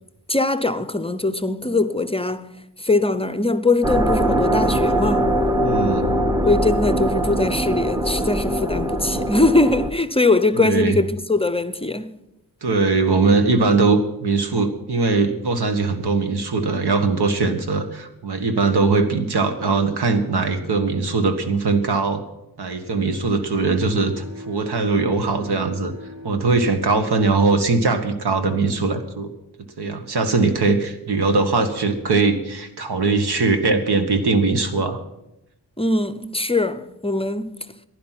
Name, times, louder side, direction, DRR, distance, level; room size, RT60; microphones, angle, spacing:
voice 1, 0.3-2.5 2.8-5.4 6.5-12.1 35.8-37.5, left 2 dB, 15° left, 0.6 m, -21 dB
sound 1, 3.8-9.9, right 1 dB, 10° right, 0.9 m, -21 dB
voice 2, 5.6-6.2 10.5-11.0 12.6-22.2 22.6-25.9 26.2-29.3 29.8-35.0, right 3 dB, 90° right, 1.6 m, -21 dB
Bowed string instrument, 22.9-27.8, left 2 dB, 50° right, 3.7 m, -41 dB
15.5 x 11.0 x 5.9 m
wide cardioid pair, 125°, 38 cm